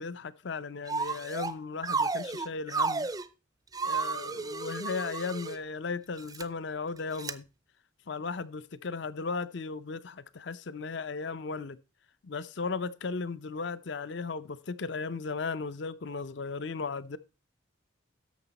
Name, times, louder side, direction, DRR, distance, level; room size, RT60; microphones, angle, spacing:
voice 1, 0.0-3.1 3.8-7.4 8.1-11.8 12.2-17.2, left 4 dB, 60° left, 0.5 m, -36 dB
sound 1, 0.9-1.5 1.8-3.3 3.7-5.6 6.2-6.4 7.2-7.3, right 4 dB, 20° right, 0.4 m, -32 dB
11.5 x 6.9 x 4.0 m
head